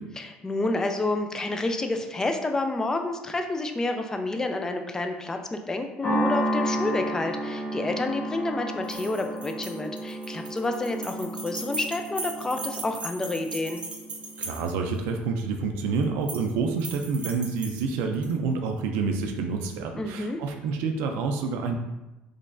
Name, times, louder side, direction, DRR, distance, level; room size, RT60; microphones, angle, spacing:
voice 1, 0.2-13.8 20.0-20.4, left 2 dB, 15° left, 5 dB, 0.4 m, -29 dB
sound 1, 6.0-14.5, equal, 50° left, 1.0 m, -32 dB
sound 2, 8.8-15.0 16.0-16.5 16.8-18.3, right 3 dB, 35° right, 0.6 m, -38 dB
voice 2, 14.4-21.7, right 4 dB, 85° right, 4 dB, 0.4 m, -28 dB
3.8 x 3.2 x 2.5 m, 1.0 s
cardioid pair, 105°, 4 cm